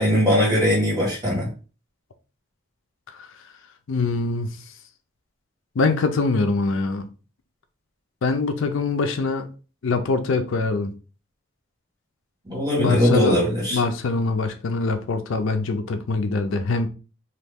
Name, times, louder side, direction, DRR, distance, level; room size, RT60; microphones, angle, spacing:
voice 1, 0.0-1.5 12.5-13.8, equal, 20° right, 1.5 m, -20 dB
voice 2, 3.9-4.5 5.8-7.1 8.2-9.5 9.8-10.9 12.8-13.4 13.7-16.9, left 3 dB, 70° left, 0.5 m, -23 dB
3.0 x 2.3 x 3.4 m
head